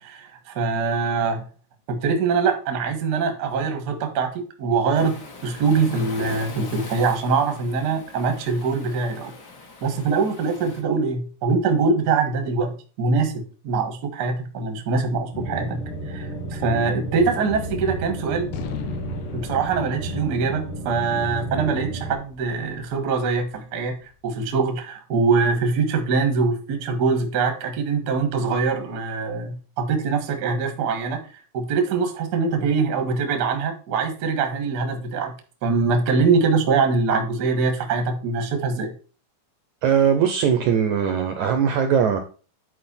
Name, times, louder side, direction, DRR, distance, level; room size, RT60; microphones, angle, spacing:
voice 1, 0.0-1.4 1.9-9.3 9.8-15.8 16.1-18.5 19.3-23.9 24.2-31.2 31.5-35.3 35.6-38.9, right 4 dB, 55° right, 5 dB, 1.1 m, -23 dB
Waves surf, 4.9-10.8, left 3 dB, 45° left, 1.5 m, -40 dB
sound 1, 15.3-22.2, right 1 dB, 65° left, 3.9 m, -32 dB
Gunshot gunfire, 17.5-24.0, left 8 dB, 80° left, 2.9 m, -40 dB
voice 2, 39.8-42.2, right 7 dB, 80° right, 7 dB, 1.8 m, -20 dB
10.0 x 4.7 x 4.3 m, 0.38 s
omnidirectional pair, 4.3 m